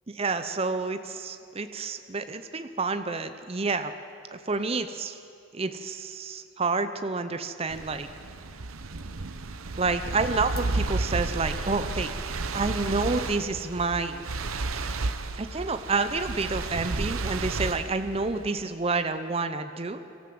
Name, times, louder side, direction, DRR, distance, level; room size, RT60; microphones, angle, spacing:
voice 1, 0.1-3.9 4.3-5.2 5.5-8.1 9.8-12.1 12.5-14.2 15.4-20.0, right 3 dB, 30° right, 9 dB, 0.6 m, -29 dB
sound 1, 7.7-18.6, right 3 dB, 85° right, 0.9 m, -32 dB
24.0 x 14.0 x 7.8 m, 2.6 s
head